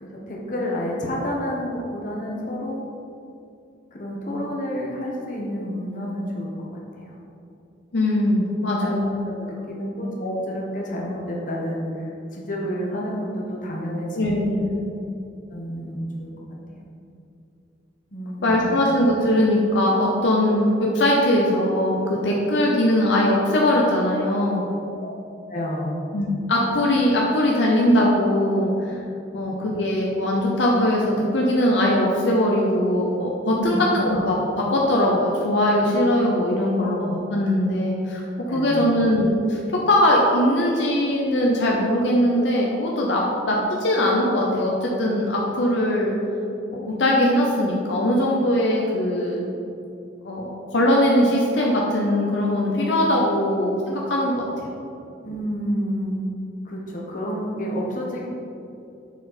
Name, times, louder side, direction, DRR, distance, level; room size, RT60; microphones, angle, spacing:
voice 1, 0.0-2.8 3.9-6.7 7.0-7.2 8.8-9.0 9.7-14.5 15.5-16.3 16.7-16.8 18.1-18.8 25.0-25.1 25.5-26.0 33.5-33.9 36.8-37.1 38.5-38.8 55.2-56.2 56.6-58.3, equal, 45° left, -3 dB, 1.2 m, -29 dB
voice 2, 7.9-9.1 14.1-14.7 18.4-24.6 26.1-29.0 29.3-46.1 46.7-49.5 50.2-54.7, left 1 dB, 75° left, -2 dB, 0.8 m, -21 dB
7.2 x 4.3 x 4.1 m, 2.7 s
head